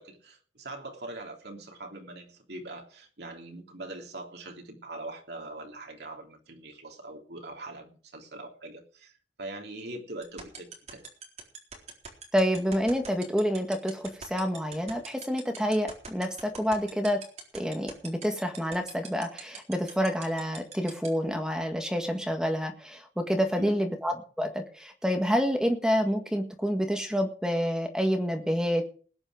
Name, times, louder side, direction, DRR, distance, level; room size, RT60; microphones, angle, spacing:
voice 1, 0.0-9.1 9.4-11.0 23.6-23.8, right 2 dB, 60° right, 3.4 m, -42 dB
sound 1, 10.2-21.1, right 7 dB, 40° right, 4.0 m, -41 dB
voice 2, 12.3-17.2 17.5-28.9, equal, 5° right, 1.7 m, -28 dB
20.0 x 8.9 x 5.1 m
head